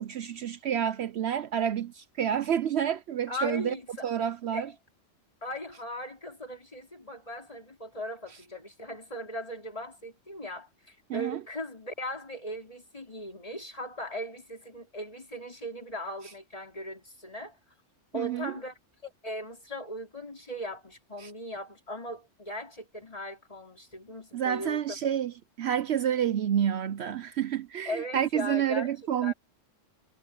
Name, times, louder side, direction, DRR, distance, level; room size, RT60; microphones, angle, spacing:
voice 1, 0.0-3.7 4.0-4.7 11.1-11.4 18.1-18.5 21.2-21.3 24.3-29.3, right 9 dB, 65° right, 0.8 m, -29 dB
voice 2, 3.3-4.1 4.5-4.6 5.4-17.6 18.1-18.7 19.0-25.0 27.9-28.9 29.2-29.3, left 1 dB, 30° left, 4.0 m, -38 dB
omnidirectional pair, 1.3 m